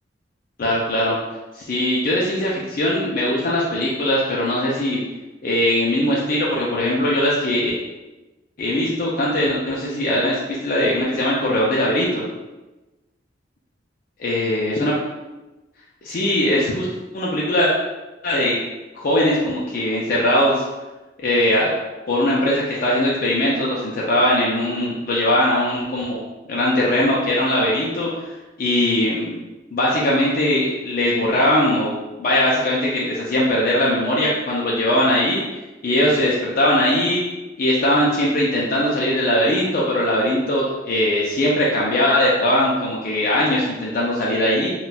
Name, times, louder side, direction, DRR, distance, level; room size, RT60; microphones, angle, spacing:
voice 1, 0.6-1.2 1.6-5.0 5.4-7.7 8.6-12.3 14.2-14.9 16.0-16.9 17.1-17.7 18.2-18.6 18.9-20.6 21.2-21.7 22.1-26.2 26.5-28.1 28.6-29.3 29.7-31.9 32.2-35.4 35.8-37.2 37.6-44.7, left 1 dB, 50° left, -5 dB, 0.5 m, -20 dB
4.0 x 2.3 x 2.2 m, 1.1 s
head